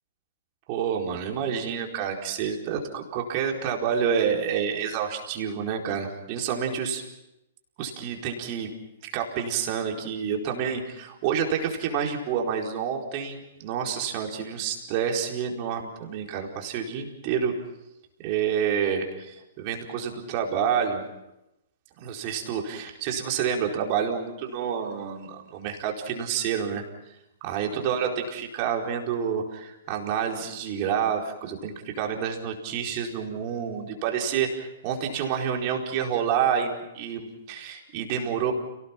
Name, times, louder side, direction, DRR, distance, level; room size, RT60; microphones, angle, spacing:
voice 1, 0.7-7.0 7.8-8.7 9.1-17.5 18.2-21.0 22.0-26.8 27.4-38.5, right 7 dB, 40° right, 1 dB, 4.5 m, -28 dB
30.0 x 18.5 x 5.9 m, 0.90 s
hypercardioid pair, 120°, 0 cm